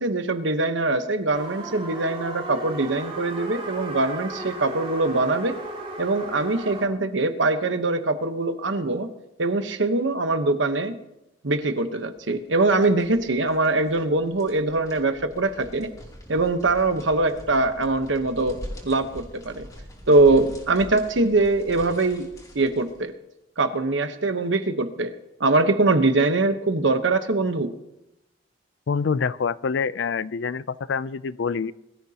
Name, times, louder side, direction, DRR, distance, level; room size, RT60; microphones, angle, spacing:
voice 1, 0.0-5.6 6.0-9.1 9.4-11.0 11.4-15.9 16.3-18.6 18.8-19.7 20.1-22.3 22.5-23.1 23.6-25.1 25.4-27.7, right 2 dB, 75° right, 9 dB, 1.1 m, -22 dB
sound 1, 1.3-6.9, right 2 dB, 30° right, 3.0 m, -35 dB
sound 2, 12.4-23.0, equal, 20° left, 3.0 m, -43 dB
voice 2, 28.9-31.7, left 5 dB, 70° left, 18 dB, 0.4 m, -26 dB
22.0 x 13.5 x 2.9 m, 0.90 s
head